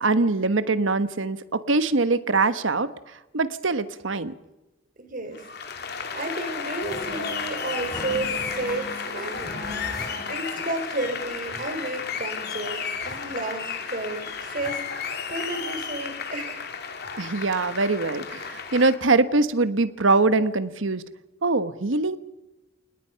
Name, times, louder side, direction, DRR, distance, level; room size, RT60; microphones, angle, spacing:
voice 1, 0.0-2.9 3.3-4.3 17.2-21.0 21.4-22.2, right 3 dB, 80° right, 13 dB, 1.2 m, -23 dB
voice 2, 5.0-5.4 5.8-9.6 10.3-14.8 15.3-16.7, right 2 dB, 45° right, 7 dB, 4.3 m, -32 dB
Applause, 5.3-19.0, left 6 dB, 55° left, 2.8 m, -33 dB
sound 1, 6.8-10.4 10.8-10.9 11.1-11.9 12.3-12.4 12.6-13.4 13.9-14.0 14.3-15.0 15.4-15.5 15.7-15.8, left 1 dB, 20° left, 2.6 m, -40 dB
28.5 x 19.5 x 5.8 m, 1.0 s
head